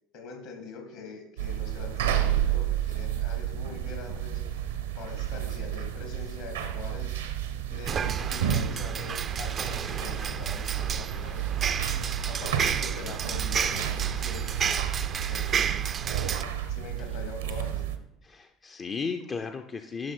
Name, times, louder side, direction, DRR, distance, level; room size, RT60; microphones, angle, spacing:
voice 1, 0.1-4.4 4.9-7.1 7.7-11.7 12.3-14.8 15.3-15.5 16.7-17.8, left 4 dB, 65° left, 3 dB, 2.4 m, -43 dB
sound 1, 1.4-18.0, right 10 dB, 70° right, 0.8 m, -31 dB
sound 2, 7.9-16.4, right 7 dB, 35° right, 0.4 m, -32 dB
voice 2, 18.2-20.1, left 5 dB, 30° left, 6 dB, 0.6 m, -35 dB
11.0 x 6.0 x 4.5 m, 0.82 s
figure-of-eight pair, 65°, 0 cm